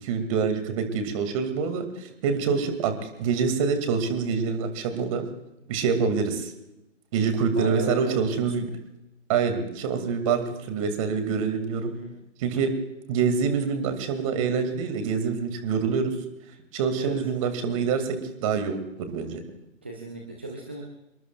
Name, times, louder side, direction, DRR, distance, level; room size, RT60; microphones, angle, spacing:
voice 1, 0.0-5.3 5.7-6.5 7.1-8.7 9.3-11.9 12.4-12.7 13.1-16.1 16.7-19.4, right 5 dB, 25° right, 8 dB, 2.3 m, -26 dB
voice 2, 7.5-8.3 11.7-12.1 17.0-17.2 19.8-20.8, right 2 dB, 10° right, 1 dB, 0.5 m, -35 dB
26.5 x 21.5 x 2.4 m, 0.90 s
figure-of-eight pair, 135°, 40 cm